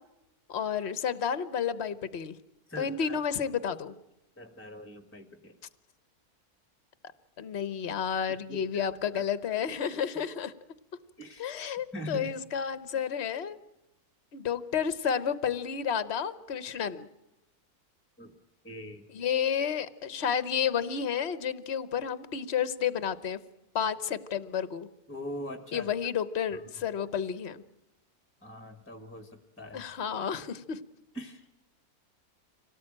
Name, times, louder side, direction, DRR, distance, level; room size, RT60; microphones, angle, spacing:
voice 1, 0.5-2.4 2.8-4.0 7.4-10.5 11.4-13.6 14.3-17.1 19.1-23.4 23.7-24.9 25.7-27.6 29.7-30.8, left 7 dB, 50° left, 14 dB, 1.2 m, -31 dB
voice 2, 2.7-3.2 4.4-5.6 8.3-8.8 9.1-9.2 9.9-10.0 11.2-11.5 11.9-12.3 18.2-18.3 18.6-19.1 25.1-25.9 28.4-29.9 31.1-31.4, equal, 10° left, 7 dB, 1.6 m, -42 dB
25.5 x 18.0 x 8.8 m, 0.94 s
omnidirectional pair, 1.6 m